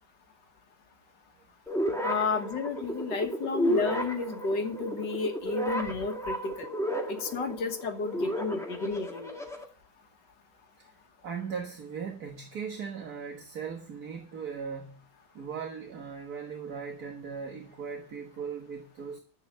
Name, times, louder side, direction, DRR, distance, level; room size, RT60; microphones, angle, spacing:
sound 1, 1.7-9.6, equal, ahead, 1.9 m, -33 dB
voice 1, 2.0-6.7 7.1-9.4, left 4 dB, 90° left, 2.0 m, -32 dB
voice 2, 10.8-15.1 15.3-19.2, right 6 dB, 60° right, 1.9 m, -38 dB
11.0 x 7.8 x 6.4 m
omnidirectional pair, 1.8 m